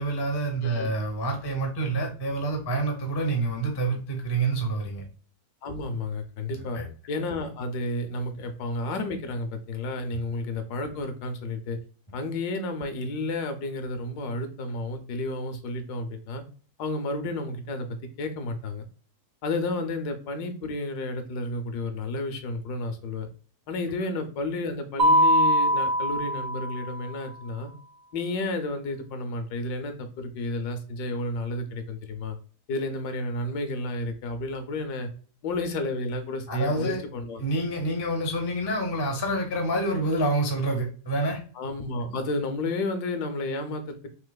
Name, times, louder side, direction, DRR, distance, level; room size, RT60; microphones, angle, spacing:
voice 1, 0.0-5.0 6.6-6.9 36.5-37.0 37.4-41.4, right 2 dB, 35° left, 0.4 m, -27 dB
voice 2, 5.6-6.8 7.1-11.8 12.1-16.4 16.8-18.8 19.4-23.3 23.7-27.7 28.1-32.4 32.7-35.1 35.4-37.4 41.6-44.1, left 2 dB, 75° left, 1.2 m, -31 dB
Mallet percussion, 25.0-27.1, equal, 65° right, 0.6 m, -22 dB
3.8 x 2.8 x 2.2 m
omnidirectional pair, 1.8 m